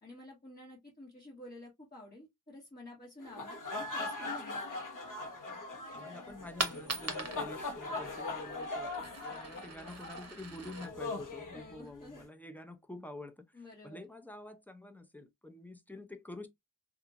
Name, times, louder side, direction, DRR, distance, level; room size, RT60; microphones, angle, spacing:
voice 1, 0.0-4.8 11.5-12.2 13.5-14.0, left 1 dB, 25° left, 1.5 m, -51 dB
sound 1, 3.2-12.2, left 2 dB, 50° left, 0.9 m, -41 dB
voice 2, 5.9-13.5 13.8-16.5, left 2 dB, 5° left, 0.5 m, -48 dB
Coin (dropping), 6.3-12.3, right 3 dB, 40° right, 0.9 m, -43 dB
2.8 x 2.5 x 2.5 m
wide cardioid pair, 65°, 40 cm